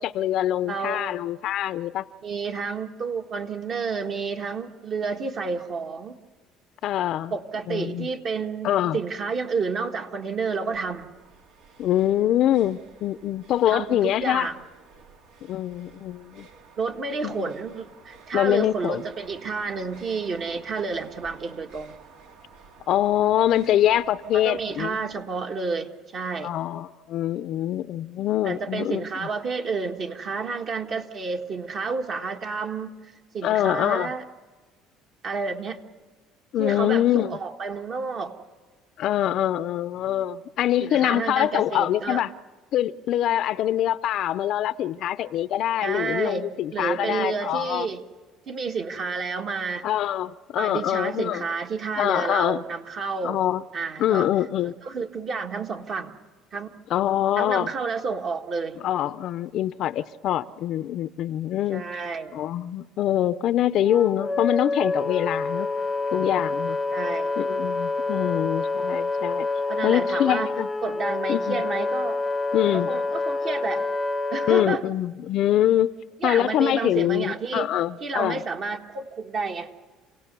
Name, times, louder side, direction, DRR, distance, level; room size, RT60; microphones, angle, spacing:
voice 1, 0.0-2.0 6.8-7.3 7.7-8.1 8.6-9.0 11.8-14.5 15.5-16.5 17.2-17.5 18.3-19.0 22.9-25.0 26.4-29.3 33.4-34.1 36.5-37.4 39.0-42.3 42.7-47.9 49.8-51.4 52.0-52.6 53.2-53.6 54.0-54.7 56.9-57.7 58.8-61.8 62.3-65.7 66.1-66.8 67.4-69.5 69.8-70.7 71.3-71.6 72.5-72.9 74.5-75.9 76.2-78.4, left 12 dB, 55° left, 0.6 m, -24 dB
voice 2, 0.6-1.2 2.2-6.2 7.3-11.1 13.7-14.6 16.8-21.9 24.3-26.5 28.4-33.0 33.3-34.2 35.2-35.8 36.6-38.3 40.8-42.2 45.8-48.0 48.5-49.8 50.6-53.4 53.7-54.3 54.8-56.1 56.5-56.7 57.4-58.8 61.7-62.3 66.9-67.3 69.7-70.5 70.8-72.2 72.7-73.9 74.3-74.8 76.2-77.7 78.0-79.7, right 4 dB, 45° right, 1.7 m, -30 dB
sound 1, 10.7-25.2, right 5 dB, 80° right, 2.5 m, -52 dB
Wind instrument woodwind instrument, 63.8-74.7, left 3 dB, 15° left, 0.7 m, -27 dB
28.0 x 17.5 x 6.9 m
cardioid pair, 120°, 0 cm